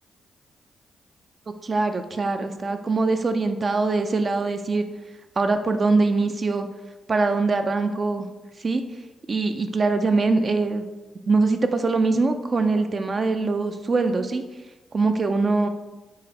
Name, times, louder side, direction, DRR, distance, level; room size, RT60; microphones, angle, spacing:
voice 1, 1.6-4.8 5.4-6.7 7.1-8.3 8.6-8.8 9.3-10.8 11.3-14.4 14.9-15.7, right 3 dB, 45° right, 7 dB, 0.3 m, -22 dB
3.8 x 3.2 x 2.8 m, 1.1 s
hypercardioid pair, 40°, 0 cm